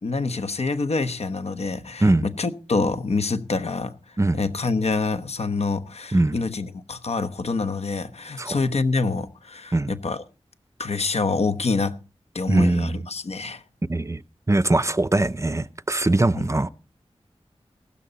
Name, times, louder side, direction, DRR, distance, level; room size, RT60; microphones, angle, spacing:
voice 1, 0.0-3.9 4.3-10.2 10.8-12.0 12.3-13.6 16.4-16.5, left 4 dB, 75° left, 1.0 m, -26 dB
voice 2, 12.5-13.0 13.9-14.2 14.5-16.7, right 2 dB, 25° right, 0.6 m, -21 dB
16.5 x 12.5 x 4.0 m
wide cardioid pair, 75°, 11 cm